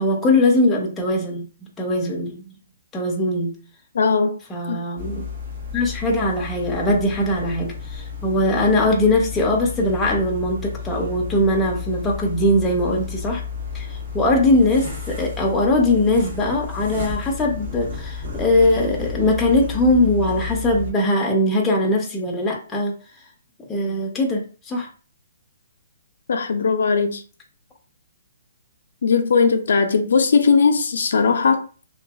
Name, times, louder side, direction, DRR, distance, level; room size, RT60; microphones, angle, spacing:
voice 1, 0.0-1.5 1.8-2.5 2.9-3.5 4.5-5.3 5.7-13.4 13.7-22.9 23.7-24.9, left 1 dB, 10° left, 0.5 m, -21 dB
voice 2, 3.9-4.4 4.7-4.8 26.3-27.2 29.0-31.6, left 5 dB, 70° left, 0.4 m, -18 dB
sound 1, 5.0-20.9, left 5 dB, 55° right, 1.1 m, -32 dB
2.6 x 2.4 x 2.3 m
hypercardioid pair, 165°, 0 cm